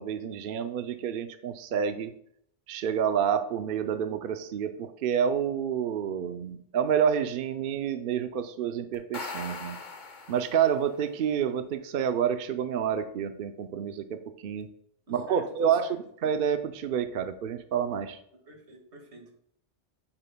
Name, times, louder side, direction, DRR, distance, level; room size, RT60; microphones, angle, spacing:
voice 1, 0.0-2.1 2.7-9.8 10.3-14.7 15.1-18.2, right 8 dB, 60° right, 9 dB, 0.7 m, -28 dB
sound 1, 8.9-10.9, left 4 dB, 45° left, 0.9 m, -40 dB
voice 2, 15.1-16.0 18.3-19.3, right 2 dB, 85° right, 2 dB, 2.1 m, -48 dB
8.8 x 7.7 x 2.2 m, 0.68 s
omnidirectional pair, 1.1 m